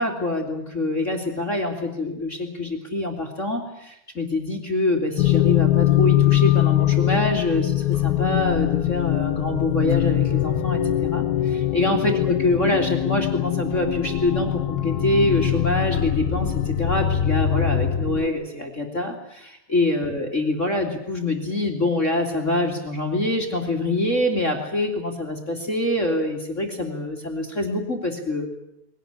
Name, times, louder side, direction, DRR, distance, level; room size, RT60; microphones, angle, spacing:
voice 1, 0.0-28.5, left 2 dB, 25° left, 3 dB, 1.9 m, -25 dB
sound 1, 5.2-18.3, left 12 dB, 70° left, 2.7 m, -22 dB
21.5 x 18.0 x 9.9 m, 0.79 s
omnidirectional pair, 4.7 m